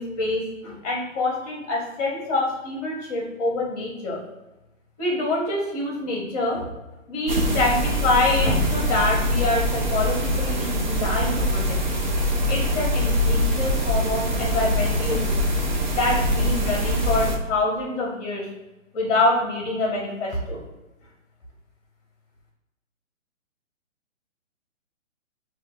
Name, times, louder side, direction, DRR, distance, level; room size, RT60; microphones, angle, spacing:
voice 1, 0.0-4.2 5.0-6.7 7.1-12.0 12.5-15.4 15.9-18.5 18.9-20.6, left 2 dB, 30° left, -2 dB, 1.2 m, -26 dB
sound 1, 7.3-17.4, equal, 40° right, 0.4 m, -23 dB
5.7 x 2.6 x 2.3 m, 1.0 s
hypercardioid pair, 155°, 39 cm